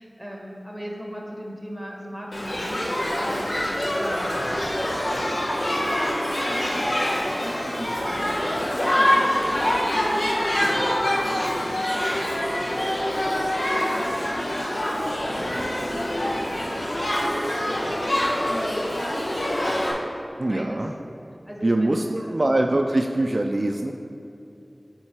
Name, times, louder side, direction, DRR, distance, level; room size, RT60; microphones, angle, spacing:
voice 1, 0.0-4.3 5.3-8.4 8.9-13.0 13.7-14.1 15.3-16.9 17.2-17.3 17.6-19.2 19.9-20.8 21.5-22.4, equal, ahead, -2 dB, 1.5 m, -38 dB
Shout / Human group actions, 2.3-19.9, left 1 dB, 75° left, 1.1 m, -25 dB
voice 2, 20.4-20.9 21.6-23.9, right 1 dB, 50° right, 3 dB, 0.3 m, -23 dB
9.0 x 3.7 x 4.6 m, 2.7 s
wide cardioid pair, 50°, 0 cm